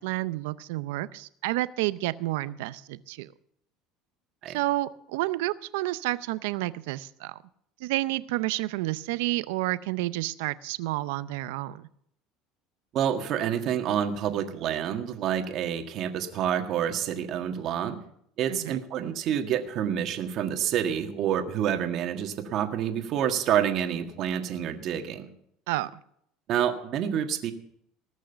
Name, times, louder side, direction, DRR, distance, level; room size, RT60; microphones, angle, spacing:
voice 1, 0.0-3.3 4.5-7.4 7.8-11.9 18.5-18.8 25.7-25.9, right 17 dB, 85° right, 16 dB, 0.6 m, -30 dB
voice 2, 12.9-18.0 18.4-25.3 26.5-27.5, right 9 dB, 55° right, 5 dB, 1.6 m, -28 dB
19.0 x 6.4 x 6.9 m, 0.70 s
supercardioid pair, 115°, 0 cm